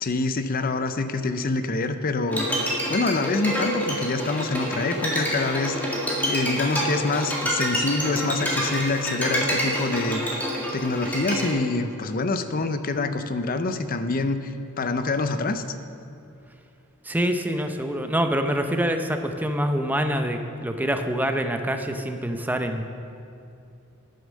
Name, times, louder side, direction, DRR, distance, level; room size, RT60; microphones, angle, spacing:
voice 1, 0.0-2.5 2.9-6.0 6.3-10.4 10.7-15.6, left 3 dB, 40° left, 10 dB, 0.6 m, -26 dB
Bowed string instrument, 2.3-11.5, equal, 10° left, 1.9 m, -27 dB
voice 2, 17.0-22.8, equal, 10° right, 6 dB, 0.6 m, -25 dB
9.5 x 8.8 x 6.4 m, 2.5 s
head